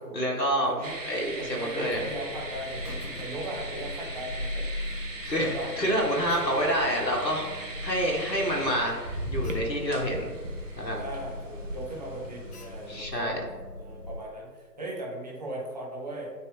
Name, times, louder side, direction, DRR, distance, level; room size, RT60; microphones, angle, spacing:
voice 1, 0.1-0.7 1.1-2.0 5.2-10.3 10.8-11.0 12.9-13.4, equal, 80° left, -1 dB, 1.7 m, -28 dB
voice 2, 0.7-1.0 1.4-5.1 5.3-5.7 6.0-6.1 11.0-16.3, right 1 dB, 25° right, -4 dB, 1.0 m, -38 dB
sound 1, 0.8-13.0, right 1 dB, 50° right, 0.9 m, -39 dB
Alarm, 1.9-14.3, left 2 dB, 65° left, 0.8 m, -40 dB
8.9 x 3.2 x 3.4 m, 1.4 s
figure-of-eight pair, 155°, 50 cm